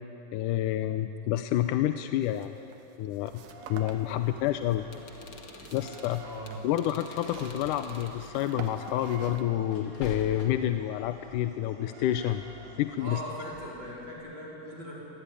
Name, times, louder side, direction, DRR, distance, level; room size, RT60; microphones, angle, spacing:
voice 1, 0.3-2.6 3.0-3.3 3.7-4.9 5.7-6.2 6.6-12.4 12.8-13.2, left 12 dB, 75° left, 9 dB, 2.1 m, -28 dB
sound 1, 2.2-9.4, right 7 dB, 85° right, 3.1 m, -48 dB
sound 2, 3.2-14.1, right 2 dB, 65° right, 4.6 m, -51 dB
sound 3, 4.8-8.2 9.7-10.8, left 3 dB, 45° left, 2.6 m, -45 dB
voice 2, 6.2-6.5 13.0-15.0, equal, 30° right, -4 dB, 5.5 m, -40 dB
26.0 x 19.5 x 10.0 m, 2.9 s
omnidirectional pair, 4.0 m